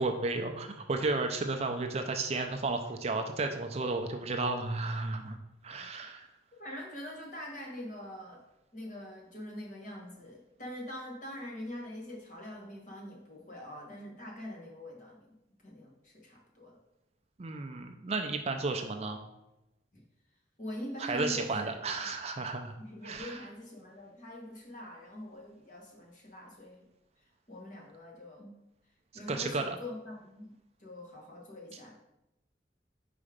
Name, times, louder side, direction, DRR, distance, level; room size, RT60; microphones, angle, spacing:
voice 1, 0.0-5.4 5.6-6.3 17.4-19.2 21.0-22.7 23.0-23.4 29.3-29.8, right 3 dB, 35° right, 5 dB, 0.4 m, -33 dB
voice 2, 6.6-8.4 8.7-15.3 15.6-16.8 19.9-20.0 20.6-22.1 22.8-26.9 27.5-28.5 29.1-30.5 30.8-32.0, left 1 dB, 40° left, -2 dB, 1.5 m, -44 dB
4.9 x 4.3 x 5.0 m, 0.90 s
head